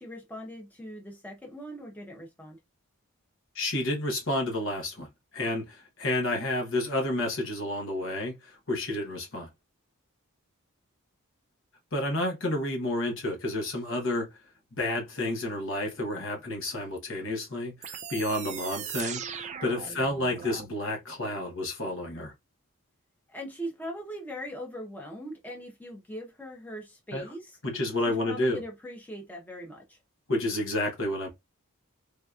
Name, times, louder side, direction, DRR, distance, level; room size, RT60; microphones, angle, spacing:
voice 1, 0.0-2.6 19.7-19.8 23.3-27.6 28.0-30.0, equal, 10° left, 0.8 m, -41 dB
voice 2, 3.5-5.1 5.3-9.5 11.9-14.3 14.7-22.3 27.1-27.2 27.6-28.6 30.3-31.3, left 1 dB, 60° left, 1.1 m, -30 dB
sound 1, 17.8-20.7, right 8 dB, 35° right, 0.3 m, -39 dB
3.4 x 2.9 x 2.4 m
head